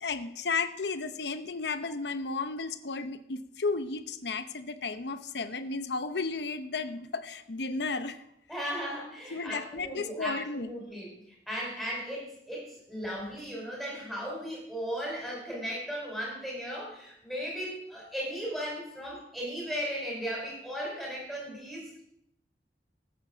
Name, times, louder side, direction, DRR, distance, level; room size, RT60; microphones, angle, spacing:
voice 1, 0.0-8.2 9.3-10.7, left 4 dB, 75° left, 11 dB, 0.9 m, -33 dB
voice 2, 8.5-22.0, equal, ahead, -3 dB, 5.0 m, -36 dB
15.0 x 8.6 x 6.2 m, 0.76 s
head